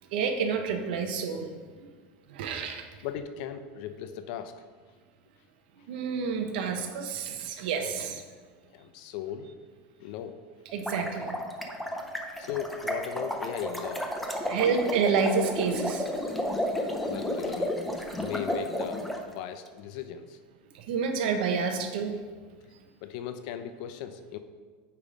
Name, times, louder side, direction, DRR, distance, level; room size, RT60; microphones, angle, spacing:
voice 1, 0.1-1.9 2.3-2.9 5.9-8.2 10.7-11.3 14.5-16.1 20.7-22.2, right 6 dB, 80° right, 5 dB, 0.9 m, -29 dB
voice 2, 3.0-4.6 8.7-9.6 10.0-10.4 12.4-14.1 17.0-17.7 18.1-20.4 23.0-24.4, left 9 dB, 55° left, 10 dB, 0.5 m, -37 dB
sound 1, 10.7-19.2, left 1 dB, ahead, 0.5 m, -32 dB
8.9 x 3.6 x 5.0 m, 1.5 s
supercardioid pair, 170°, 5 cm